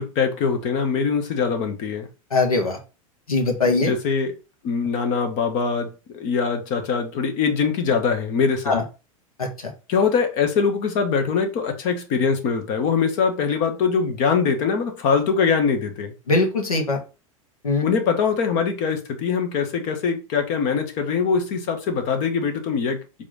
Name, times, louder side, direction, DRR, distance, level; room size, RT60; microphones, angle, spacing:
voice 1, 0.0-2.1 3.7-4.3 4.6-8.8 9.9-16.1 17.8-23.0, left 5 dB, 50° left, 1.7 m, -22 dB
voice 2, 2.3-2.8 3.3-3.9 8.7-8.8 9.4-9.7 16.3-17.0 17.6-17.9, left 3 dB, 90° left, 1.9 m, -21 dB
5.0 x 3.6 x 5.4 m
hypercardioid pair, 90°, 18 cm